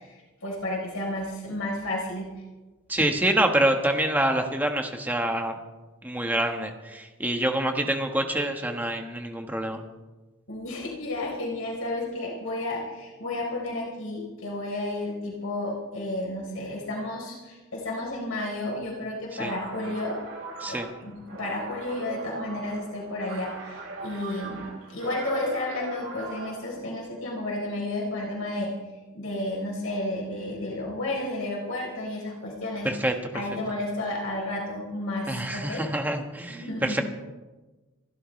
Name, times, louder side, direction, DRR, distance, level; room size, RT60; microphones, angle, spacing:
voice 1, 0.0-2.3 10.5-20.2 20.7-28.7 29.1-32.9 33.3-35.8 36.5-37.0, left 1 dB, 75° left, -2 dB, 3.9 m, -32 dB
voice 2, 2.9-5.6 6.0-9.8 19.4-19.5 20.6-20.9 32.8-33.1 35.3-37.0, right 1 dB, 10° right, 4 dB, 1.3 m, -26 dB
sound 1, 19.3-26.7, right 3 dB, 60° right, 4.5 m, -40 dB
27.0 x 12.5 x 3.2 m, 1.2 s
head